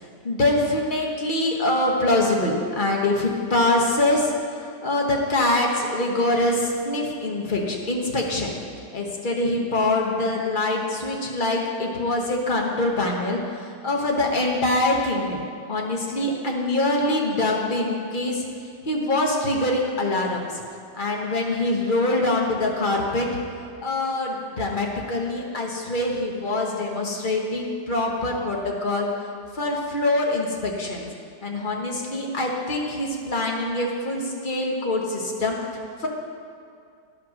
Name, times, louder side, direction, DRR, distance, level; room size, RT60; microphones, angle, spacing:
voice 1, 0.2-4.3 4.8-8.5 8.9-13.4 13.8-15.4 15.7-18.4 18.8-20.5 20.9-23.3 23.8-29.1 29.5-31.1 31.4-35.6 36.0-36.1, left 2 dB, 30° left, -1 dB, 1.0 m, -24 dB
11.5 x 5.8 x 6.2 m, 2.3 s
omnidirectional pair, 2.1 m